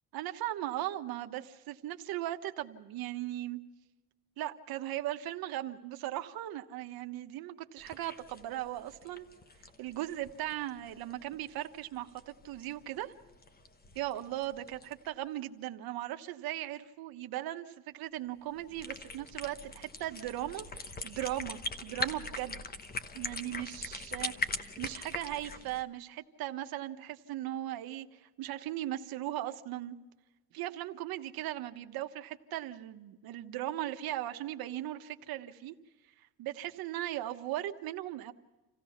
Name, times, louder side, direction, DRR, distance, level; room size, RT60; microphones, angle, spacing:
voice 1, 0.1-3.6 4.4-9.3 9.8-13.1 13.9-22.6 23.1-24.4 24.8-30.0 30.5-35.7 36.2-38.3, right 14 dB, 85° right, 7 dB, 1.2 m, -38 dB
sound 1, 7.8-15.1 18.5-25.8, left 3 dB, 25° left, 1.1 m, -42 dB
27.5 x 16.0 x 5.8 m, 1.1 s
cardioid pair, 135°, 35 cm